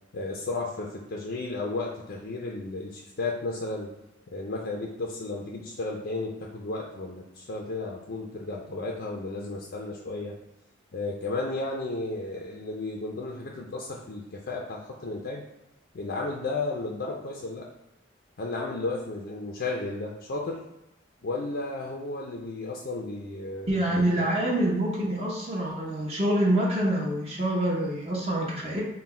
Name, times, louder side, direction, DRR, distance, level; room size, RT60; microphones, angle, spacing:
voice 1, 0.1-3.9 4.3-10.3 10.9-15.4 15.9-17.7 18.4-20.6 21.2-24.3, left 2 dB, 55° left, -1 dB, 0.5 m, -33 dB
voice 2, 23.7-28.8, right 1 dB, 30° right, -4 dB, 0.7 m, -26 dB
3.8 x 2.2 x 4.3 m, 0.90 s
head